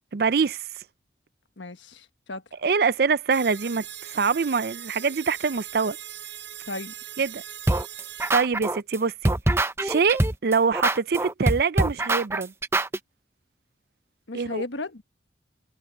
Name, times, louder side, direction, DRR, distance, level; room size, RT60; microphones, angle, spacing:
voice 1, 0.1-0.6 2.6-6.0 7.2-7.4 8.3-9.3 9.8-12.5 14.3-14.6, right 5 dB, 55° right, 0.5 m, -24 dB
voice 2, 1.6-2.4 6.7-6.9 14.3-15.0, left 2 dB, 85° left, 1.4 m, -35 dB
sound 1, 3.3-8.3, right 12 dB, 80° right, 7.5 m, -40 dB
sound 2, 7.7-9.0 9.2-13.0, right 2 dB, 15° right, 0.6 m, -24 dB
head